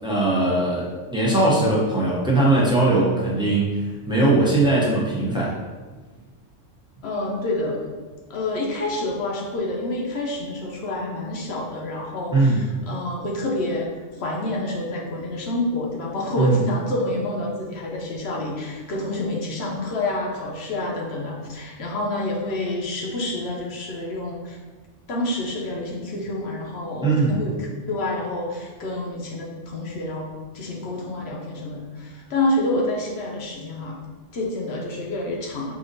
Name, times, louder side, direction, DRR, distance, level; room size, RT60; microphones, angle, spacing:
voice 1, 0.0-5.5 12.3-12.6 16.4-16.6 27.0-27.4, right 2 dB, 10° right, -6 dB, 0.3 m, -20 dB
voice 2, 7.0-7.9 8.3-24.6 25.1-30.3 30.5-34.0 34.3-35.7, left 2 dB, 60° left, -2 dB, 0.9 m, -28 dB
4.9 x 2.5 x 2.6 m, 1.3 s
omnidirectional pair, 1.3 m